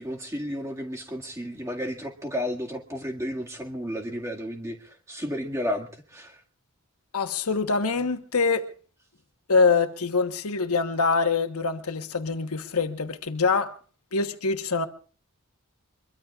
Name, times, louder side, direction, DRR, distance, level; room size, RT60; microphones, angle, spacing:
voice 1, 0.0-6.4, equal, 15° right, 1.9 m, -32 dB
voice 2, 7.1-8.7 9.5-13.7 14.1-14.9, left 4 dB, 85° left, 1.2 m, -24 dB
24.0 x 22.5 x 2.4 m
head